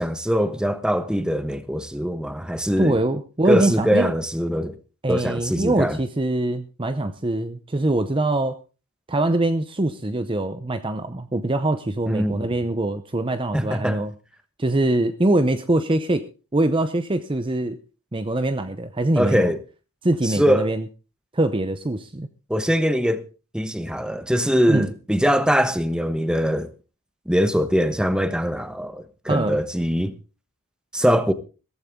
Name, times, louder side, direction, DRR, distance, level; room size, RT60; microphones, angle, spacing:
voice 1, 0.0-3.0 3.5-4.8 5.1-6.0 12.1-12.5 13.5-14.0 19.2-19.6 20.2-20.7 22.5-23.2 23.5-26.7 27.3-30.1 30.9-31.3, equal, 5° right, 1.1 m, -22 dB
voice 2, 2.8-4.1 5.0-8.6 9.1-14.1 14.6-16.3 16.5-17.8 18.1-19.4 20.0-20.8 21.3-22.3 24.7-24.9 29.3-29.6, right 2 dB, 25° right, 0.7 m, -23 dB
15.5 x 14.5 x 3.7 m
head